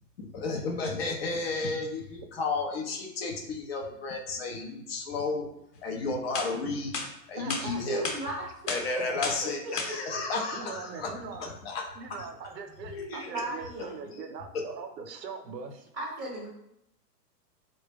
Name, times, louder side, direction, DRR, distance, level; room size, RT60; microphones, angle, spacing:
voice 1, 0.2-5.5 5.8-7.0 7.3-8.1 8.7-12.0 13.1-13.3 14.1-14.3, left 3 dB, 40° left, 2 dB, 0.5 m, -33 dB
sound 1, 5.9-6.0 6.3-6.5 6.9-7.1 7.5-7.6 8.0-8.2 8.7-8.8 9.2-9.4 9.8-9.9, left 4 dB, 70° left, 0.9 m, -31 dB
voice 2, 7.4-8.1 9.0-9.3 10.5-11.5 12.0-15.9, right 5 dB, 85° right, 6 dB, 0.7 m, -41 dB
voice 3, 7.9-8.5 9.6-10.2 12.8-14.2 15.9-16.5, right 1 dB, 10° right, -10 dB, 0.3 m, -36 dB
3.9 x 2.1 x 3.3 m, 0.80 s
hypercardioid pair, 135°, 49 cm